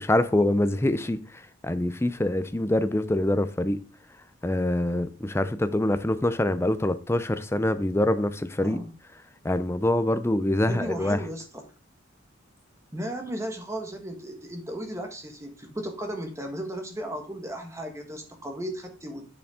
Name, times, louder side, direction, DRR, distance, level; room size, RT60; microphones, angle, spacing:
voice 1, 0.0-3.8 4.4-8.8 9.4-11.2, left 1 dB, 15° left, 0.5 m, -25 dB
voice 2, 8.6-8.9 10.7-11.6 12.9-19.2, right 1 dB, 15° right, 1.4 m, -35 dB
8.0 x 6.9 x 3.6 m
head